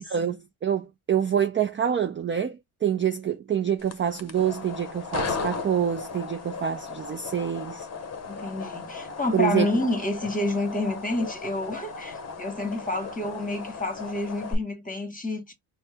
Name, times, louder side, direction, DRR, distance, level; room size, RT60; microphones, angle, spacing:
voice 1, 0.1-7.9 9.3-9.7, right 8 dB, 25° right, 0.4 m, -26 dB
sound 1, 3.8-14.5, left 4 dB, 30° left, 0.8 m, -36 dB
voice 2, 8.3-15.5, left 2 dB, 15° left, 1.3 m, -29 dB
4.3 x 2.2 x 3.4 m
cardioid pair, 95°, 49 cm